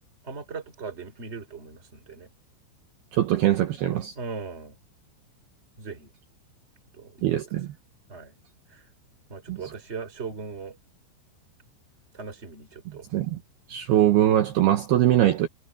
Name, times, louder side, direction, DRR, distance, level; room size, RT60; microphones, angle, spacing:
voice 1, 0.2-2.3 4.1-4.8 5.8-6.1 6.9-7.6 8.1-8.3 8.7-8.9 9.3-10.8 12.1-13.0, right 5 dB, 15° right, 2.9 m, -39 dB
voice 2, 3.1-4.1 7.2-7.7 9.5-9.6 13.1-13.4 13.7-15.5, right 12 dB, 70° right, 2.7 m, -22 dB
omnidirectional pair, 5.7 m